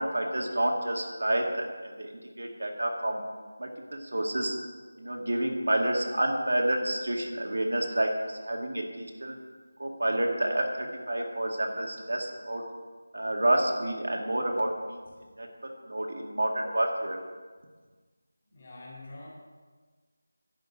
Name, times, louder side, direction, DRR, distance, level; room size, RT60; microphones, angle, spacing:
voice 1, 0.0-2.1 2.4-3.2 3.6-4.6 5.0-9.4 9.8-12.6 13.1-15.0 15.4-15.5 15.9-17.2, right 1 dB, 85° right, 1 dB, 2.1 m, -29 dB
voice 2, 18.4-19.3, left 2 dB, 30° left, -5 dB, 3.0 m, -45 dB
11.0 x 5.6 x 7.7 m, 1.4 s
figure-of-eight pair, 180°, 0 cm